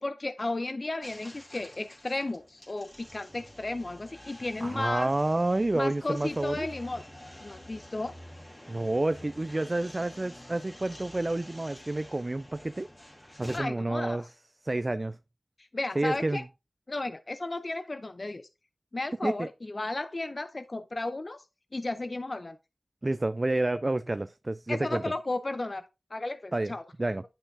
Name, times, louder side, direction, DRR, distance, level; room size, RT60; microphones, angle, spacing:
voice 1, 0.0-5.1 5.7-7.0 7.4-8.1 13.5-14.3 15.6-16.5 16.9-18.5 18.9-21.4 21.7-22.6 24.7-25.8 26.1-26.8, left 2 dB, 50° left, 0.5 m, -34 dB
sound 1, 1.0-13.6, left 1 dB, 25° left, 2.5 m, -49 dB
voice 2, 4.6-6.7 8.7-12.9 13.4-14.2 14.6-15.2 16.0-16.4 19.2-19.5 23.0-25.1 26.5-26.7 27.0-27.2, right 2 dB, 40° right, 0.3 m, -29 dB
10.0 x 5.6 x 2.6 m
wide cardioid pair, 55°, 0 cm